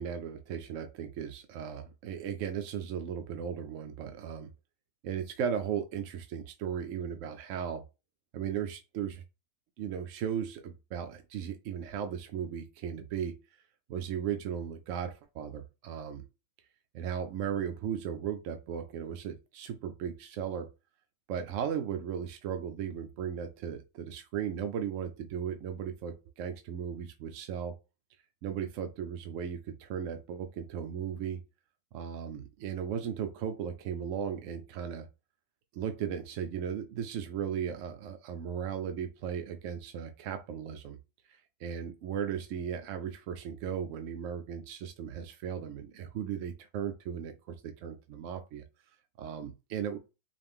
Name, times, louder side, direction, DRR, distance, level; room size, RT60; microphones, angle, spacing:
voice 1, 0.0-4.5 5.0-7.8 8.3-9.2 9.8-13.4 13.9-16.3 16.9-20.7 21.3-27.7 28.4-31.4 31.9-35.1 35.7-41.0 41.3-48.6 49.2-50.0, right 8 dB, 70° right, 6 dB, 0.7 m, -36 dB
5.0 x 2.5 x 3.5 m, 0.28 s
omnidirectional pair, 1.8 m